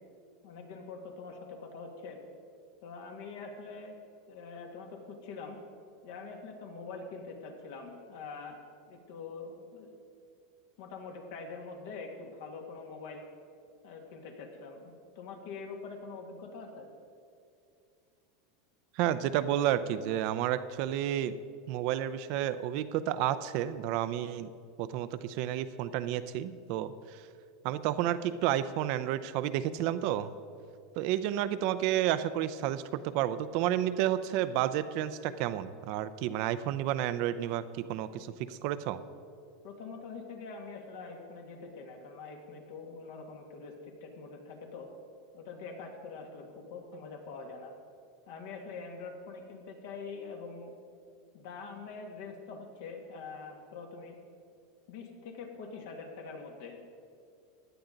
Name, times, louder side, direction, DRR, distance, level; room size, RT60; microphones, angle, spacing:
voice 1, 0.4-2.2 2.8-4.0 4.3-5.6 6.0-8.6 8.9-10.0 10.8-13.2 13.8-16.9 39.6-43.7 44.0-44.9 45.3-47.7 48.3-50.7 51.3-54.2 54.9-56.8, left 4 dB, 70° left, 2 dB, 2.0 m, -44 dB
voice 2, 18.9-21.4 21.7-24.5 24.8-27.2 27.6-30.3 31.0-39.0, right 11 dB, 60° right, 13 dB, 0.6 m, -31 dB
16.0 x 10.5 x 3.9 m, 2.4 s
hypercardioid pair, 100°, 0 cm